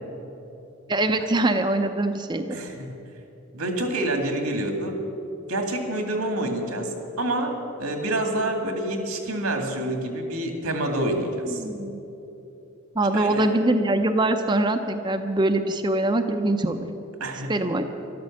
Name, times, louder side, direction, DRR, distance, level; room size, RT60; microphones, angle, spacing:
voice 1, 0.9-2.5 11.5-12.0 13.0-16.9 17.5-17.8, right 2 dB, 20° right, 6 dB, 0.6 m, -23 dB
voice 2, 2.5-3.0 3.5-5.0 5.5-11.6 13.1-13.5 17.2-17.5, right 1 dB, 85° right, 4 dB, 2.2 m, -27 dB
13.0 x 12.5 x 7.3 m, 3.0 s
head